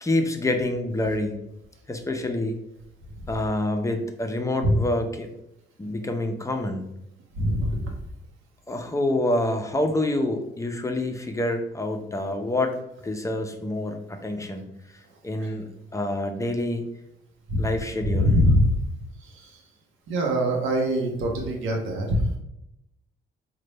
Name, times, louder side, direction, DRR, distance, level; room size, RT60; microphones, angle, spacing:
voice 1, 0.0-1.4 1.9-2.6 3.3-5.3 5.8-6.8 8.7-12.7 13.0-14.6 15.2-16.8 17.6-18.3, left 1 dB, 15° left, 5 dB, 0.5 m, -27 dB
voice 2, 7.4-7.9 17.5-17.6 18.0-18.7 20.1-22.4, equal, 85° right, 1 dB, 0.7 m, -22 dB
3.9 x 2.2 x 3.2 m, 0.82 s
cardioid pair, 90°, 20 cm